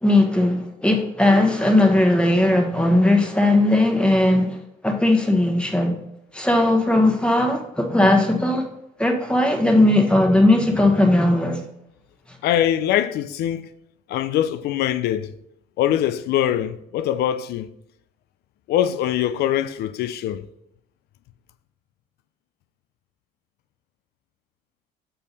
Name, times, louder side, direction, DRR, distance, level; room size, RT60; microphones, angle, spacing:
voice 1, 0.0-4.6 4.8-6.0 6.3-8.7 9.0-11.6, left 1 dB, 5° left, 1.3 m, -18 dB
voice 2, 12.4-13.7 14.1-15.3 15.8-17.7 18.7-20.5, left 11 dB, 70° left, 0.5 m, -23 dB
6.8 x 5.6 x 4.1 m
cardioid pair, 110°, 17 cm